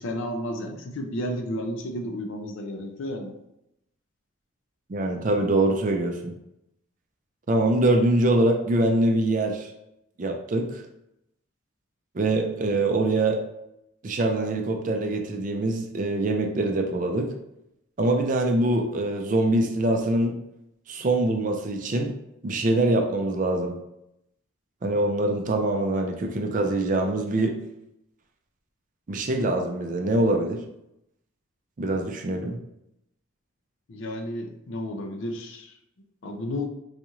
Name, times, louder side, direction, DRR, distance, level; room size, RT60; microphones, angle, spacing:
voice 1, 0.0-3.3 33.9-35.7 36.2-36.7, left 1 dB, 65° left, 4 dB, 0.5 m, -32 dB
voice 2, 4.9-6.3 7.5-9.7 10.2-10.8 12.1-13.4 14.0-17.3 18.0-20.4 20.9-22.1 22.4-23.7 24.8-27.6 29.1-30.6 31.8-32.6, right 2 dB, 40° right, 4 dB, 0.4 m, -24 dB
4.0 x 2.4 x 2.9 m, 0.84 s
head